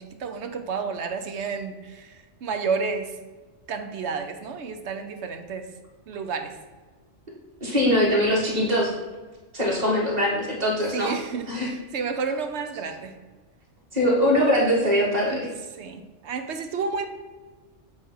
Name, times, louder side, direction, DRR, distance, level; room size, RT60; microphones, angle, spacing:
voice 1, 0.0-2.1 2.4-3.1 3.7-5.7 6.1-6.6 10.9-13.1 15.3-15.5 15.8-17.1, right 5 dB, 65° right, 7 dB, 1.0 m, -31 dB
voice 2, 7.6-8.9 9.5-11.1 11.5-11.7 13.9-15.5, equal, 35° right, -4 dB, 2.0 m, -22 dB
8.4 x 3.4 x 5.5 m, 1.3 s
omnidirectional pair, 1.3 m